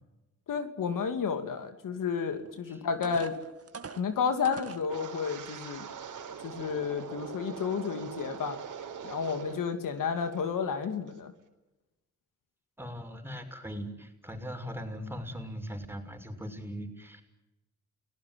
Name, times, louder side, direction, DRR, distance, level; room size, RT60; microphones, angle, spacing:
voice 1, 0.5-3.4 4.0-5.9 6.4-8.6 9.0-11.3, left 6 dB, 80° left, 7 dB, 2.7 m, -31 dB
sound 1, 2.4-2.5 3.0-4.9 5.5-5.6 6.2-6.4, right 5 dB, 45° right, 2.0 m, -43 dB
Wind, 4.8-9.7 10.0-10.4 10.8-11.1, right 6 dB, 75° right, 3.9 m, -42 dB
voice 2, 12.8-17.2, equal, 5° right, 5 dB, 6.1 m, -40 dB
29.0 x 18.0 x 9.4 m, 1.0 s
cardioid pair, 60°, 32 cm